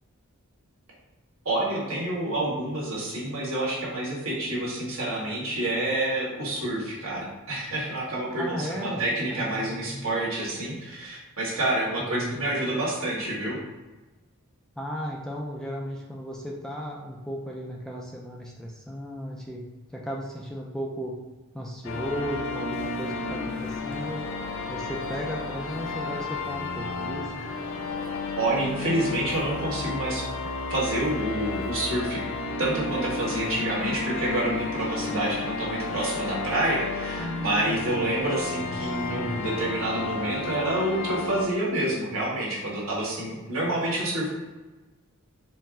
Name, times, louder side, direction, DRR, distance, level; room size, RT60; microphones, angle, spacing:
voice 1, 1.4-13.6 28.4-30.2 30.7-32.2 32.6-44.3, right 1 dB, 65° right, -4 dB, 1.4 m, -28 dB
voice 2, 8.4-9.0 9.3-10.1 12.0-12.3 14.8-19.6 19.9-21.1 21.5-24.2 24.7-27.5 37.2-38.1 38.5-38.6 39.1-39.4, equal, 5° left, -2 dB, 0.3 m, -35 dB
sound 1, 21.8-41.5, left 3 dB, 65° left, 0.5 m, -32 dB
4.4 x 2.1 x 3.6 m, 1.1 s
head